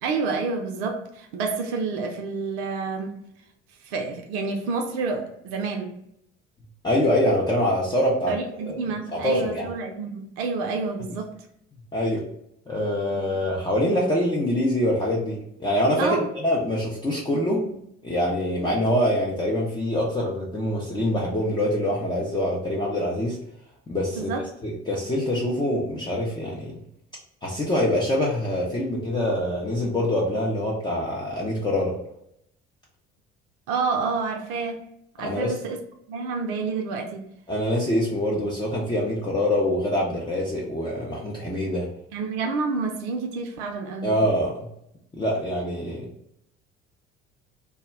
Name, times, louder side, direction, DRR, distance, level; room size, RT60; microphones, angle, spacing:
voice 1, 0.0-3.2 3.8-5.9 8.3-11.3 13.1-13.2 16.0-16.3 24.2-24.5 33.7-34.9 35.2-35.8 36.1-37.3 42.1-44.1, right 4 dB, 60° right, 0.5 m, -29 dB
voice 2, 6.8-8.3 8.6-8.8 9.1-9.7 11.9-12.2 12.7-17.8 18.0-23.4 23.9-24.3 24.6-26.7 27.4-32.0 35.2-35.5 37.5-41.9 44.0-44.7 45.1-46.1, left 1 dB, 15° left, 0.5 m, -25 dB
2.2 x 2.1 x 3.3 m
figure-of-eight pair, 50°, 35 cm